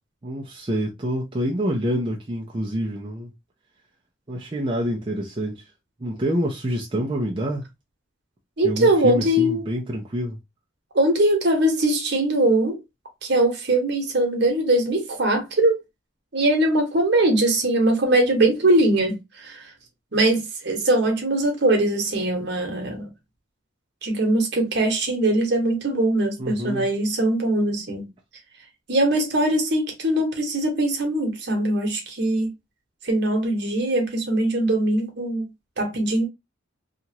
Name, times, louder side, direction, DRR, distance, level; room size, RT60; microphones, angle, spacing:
voice 1, 0.2-3.3 4.3-5.7 6.0-7.7 8.6-10.4 26.4-26.9, equal, 25° right, 0.4 m, -27 dB
voice 2, 8.6-9.6 10.9-12.8 13.2-15.8 16.3-19.7 20.1-23.1 24.0-28.1 28.9-32.5 33.0-35.5 35.8-36.3, right 1 dB, 55° right, 1.0 m, -21 dB
2.9 x 2.4 x 2.7 m
head